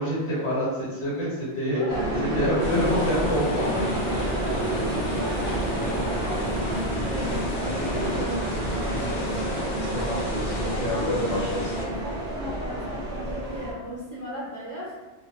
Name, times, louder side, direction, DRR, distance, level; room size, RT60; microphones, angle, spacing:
voice 1, 0.0-1.8 2.3-3.8 9.0-9.3 9.5-11.7, equal, 75° left, -8 dB, 1.4 m, -27 dB
voice 2, 1.7-2.4 2.7-3.1 3.6-9.5 10.1-11.3 11.7-14.9, equal, 15° left, -11 dB, 1.1 m, -37 dB
sound 1, 1.9-13.7, right 1 dB, 45° right, 0.6 m, -29 dB
sound 2, 2.6-11.9, left 2 dB, 60° left, 0.6 m, -35 dB
2.4 x 2.2 x 3.1 m, 1.2 s
omnidirectional pair, 1.2 m